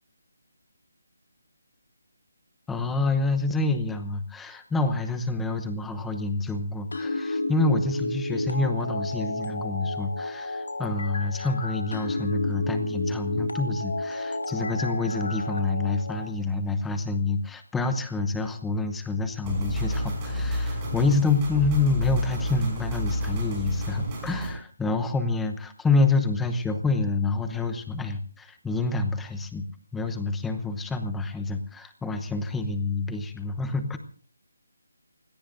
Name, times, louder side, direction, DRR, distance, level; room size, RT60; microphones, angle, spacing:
voice 1, 2.7-29.6 29.9-34.0, left 3 dB, 5° left, 8 dB, 0.8 m, -27 dB
sound 1, 6.9-16.3, left 2 dB, 80° left, 2.1 m, -31 dB
sound 2, 19.4-24.5, equal, 15° right, 5.4 m, -30 dB
29.0 x 17.5 x 2.6 m, 0.42 s
hypercardioid pair, 175°, 0 cm